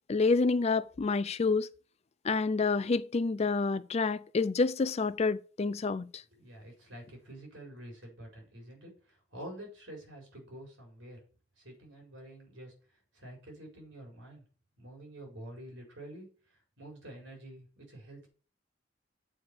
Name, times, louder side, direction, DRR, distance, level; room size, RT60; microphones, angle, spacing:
voice 1, 0.1-1.7 2.2-6.1, left 4 dB, 35° left, 0.4 m, -28 dB
voice 2, 6.3-11.2 11.6-12.7 13.1-14.4 14.8-16.3 16.8-18.3, right 1 dB, 70° right, 4.5 m, -48 dB
7.9 x 5.0 x 6.7 m
head